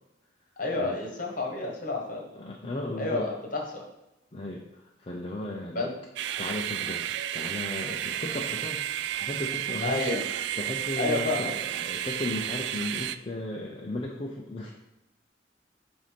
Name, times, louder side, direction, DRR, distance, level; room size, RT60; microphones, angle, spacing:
voice 1, 0.6-2.2 3.0-3.9 5.7-5.9 9.8-10.2 11.0-11.5, left 2 dB, 45° left, 0 dB, 1.3 m, -30 dB
voice 2, 2.4-3.3 4.3-5.9 6.4-8.8 9.2-10.0 10.6-14.7, left 2 dB, 30° left, -1 dB, 0.6 m, -35 dB
sound 1, 6.2-13.2, right 11 dB, 65° right, 0.3 m, -32 dB
8.0 x 2.7 x 5.2 m, 0.96 s
head